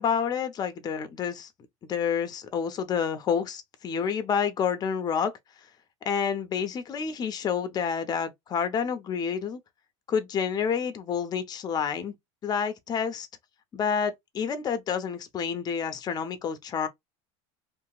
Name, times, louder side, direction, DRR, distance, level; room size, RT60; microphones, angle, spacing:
voice 1, 0.0-1.5 1.9-5.3 6.0-9.6 10.1-12.2 12.4-13.3 13.7-16.9, left 7 dB, 25° left, 0.6 m, -29 dB
2.8 x 2.6 x 2.3 m
supercardioid pair, 135°, 16 cm